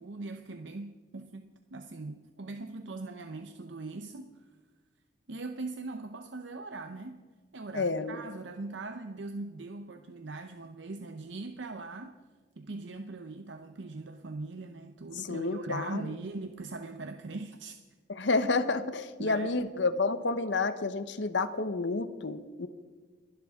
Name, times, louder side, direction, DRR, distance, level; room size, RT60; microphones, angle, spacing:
voice 1, 0.0-4.4 5.3-7.3 7.5-12.2 12.6-17.8 19.2-19.7, right 3 dB, 85° right, 7 dB, 0.8 m, -41 dB
voice 2, 7.7-8.2 15.2-16.1 18.1-22.7, left 3 dB, 80° left, 12 dB, 1.0 m, -30 dB
29.0 x 11.5 x 3.7 m, 1.4 s
head